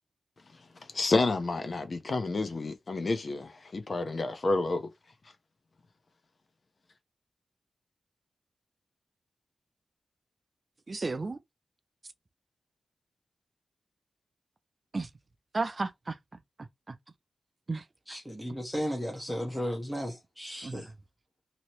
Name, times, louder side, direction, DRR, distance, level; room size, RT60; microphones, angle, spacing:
voice 1, 0.9-4.9, left 3 dB, 45° left, 0.6 m, -29 dB
voice 2, 10.9-11.4 14.9-15.1 15.5-16.2 16.6-17.0 17.7-17.9 20.6-20.8, right 3 dB, 35° right, 0.3 m, -33 dB
voice 3, 18.1-20.9, equal, ahead, 1.0 m, -35 dB
2.9 x 2.8 x 3.0 m
wide cardioid pair, 105°, 0 cm